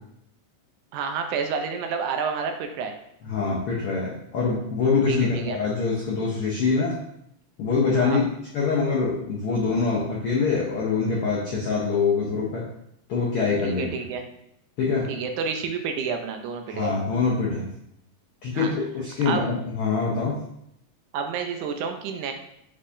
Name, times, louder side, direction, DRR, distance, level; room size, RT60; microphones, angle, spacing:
voice 1, 0.9-2.9 5.1-5.6 7.9-8.3 13.6-14.3 15.1-16.9 18.5-18.7 19.3-19.5 21.1-22.3, right 6 dB, 85° right, 5 dB, 2.1 m, -29 dB
voice 2, 3.2-7.0 7.6-8.2 8.5-12.6 13.1-13.9 14.8-15.1 16.7-17.7 18.4-20.4, left 4 dB, 90° left, -5 dB, 1.1 m, -24 dB
5.4 x 3.5 x 2.5 m, 0.76 s
omnidirectional pair, 3.5 m